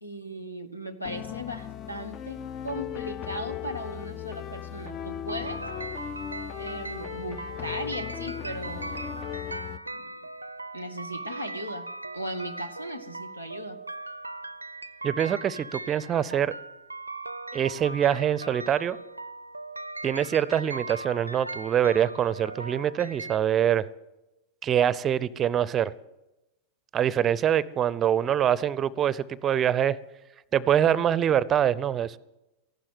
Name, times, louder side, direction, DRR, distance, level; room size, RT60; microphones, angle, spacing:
voice 1, 0.0-5.6 6.6-9.2 9.9-10.2 10.7-11.9 12.1-13.8, equal, 85° left, 1.5 m, -37 dB
sound 1, 1.0-9.8, left 10 dB, 35° left, 0.5 m, -37 dB
sound 2, 5.3-23.4, right 2 dB, 85° right, 0.5 m, -39 dB
voice 2, 15.0-16.5 17.5-19.0 20.0-23.9 24.6-25.9 26.9-30.0 30.5-32.2, right 9 dB, 25° right, 0.5 m, -24 dB
15.0 x 12.0 x 8.0 m
figure-of-eight pair, 90°, 0 cm